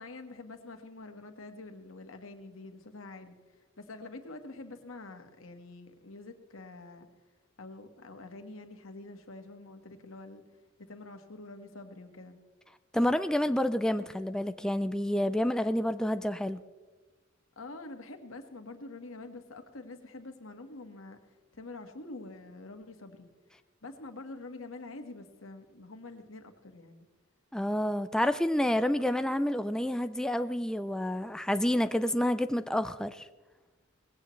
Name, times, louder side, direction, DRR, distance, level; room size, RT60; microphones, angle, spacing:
voice 1, 0.0-3.4 3.8-7.1 7.6-10.4 10.8-12.4 17.5-21.2 21.5-23.3 23.8-27.1, left 2 dB, 85° left, 6 dB, 1.6 m, -46 dB
voice 2, 12.9-16.6 27.5-33.2, left 1 dB, 5° left, 10 dB, 0.4 m, -29 dB
19.0 x 16.5 x 3.2 m, 1.3 s
head